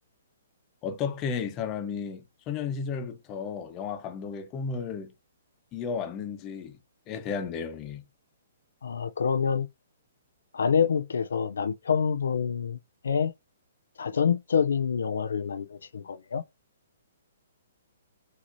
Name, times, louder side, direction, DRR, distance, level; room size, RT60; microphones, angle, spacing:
voice 1, 0.8-5.1 5.7-6.8 7.1-8.0, left 6 dB, 25° left, 0.9 m, -33 dB
voice 2, 8.8-9.7 10.5-12.8 13.0-13.3 14.0-16.4, left 6 dB, 80° left, 0.4 m, -26 dB
6.1 x 2.8 x 2.6 m
hypercardioid pair, 150°, 0 cm